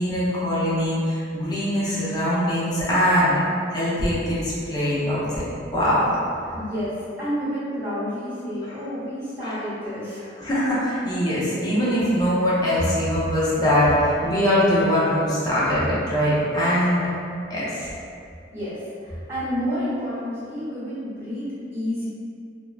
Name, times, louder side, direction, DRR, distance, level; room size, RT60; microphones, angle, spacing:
voice 1, 0.0-3.3 3.7-5.4 5.7-6.2 9.4-9.6 10.4-17.0 17.5-17.9, equal, 20° left, -9 dB, 0.6 m, -22 dB
voice 2, 6.5-10.3 18.5-22.1, equal, 15° right, -14 dB, 1.1 m, -30 dB
2.6 x 2.1 x 2.2 m, 2.4 s
head